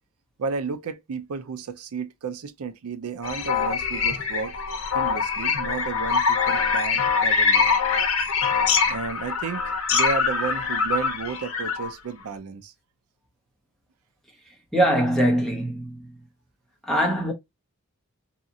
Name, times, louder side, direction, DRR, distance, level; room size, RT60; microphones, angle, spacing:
voice 1, 0.4-4.6 4.9-7.6 8.8-12.7, right 5 dB, 85° right, 0.5 m, -32 dB
sound 1, 3.2-11.9, left 5 dB, 65° left, 0.8 m, -24 dB
voice 2, 14.7-16.1 16.8-17.3, right 1 dB, ahead, 0.8 m, -22 dB
2.8 x 2.4 x 2.6 m
head